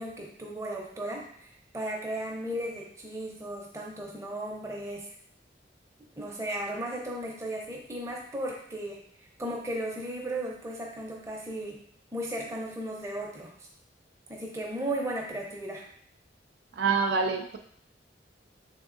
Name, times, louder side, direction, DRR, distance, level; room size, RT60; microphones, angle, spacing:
voice 1, 0.0-5.1 6.2-9.0 9.4-11.8 12.1-13.5 14.3-15.8, right 1 dB, 15° right, -1 dB, 0.6 m, -35 dB
voice 2, 16.8-17.6, right 5 dB, 60° right, 5 dB, 0.3 m, -26 dB
3.5 x 3.5 x 2.5 m, 0.65 s
head